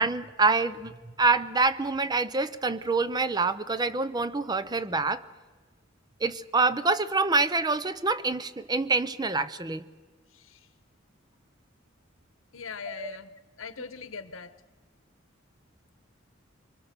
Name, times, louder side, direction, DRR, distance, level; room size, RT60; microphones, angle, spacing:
voice 1, 0.0-5.2 6.2-9.8 12.9-13.2, right 3 dB, 20° right, 14 dB, 0.6 m, -26 dB
voice 2, 12.5-14.5, left 5 dB, 85° left, 13 dB, 1.1 m, -40 dB
24.0 x 24.0 x 6.8 m, 1.3 s
head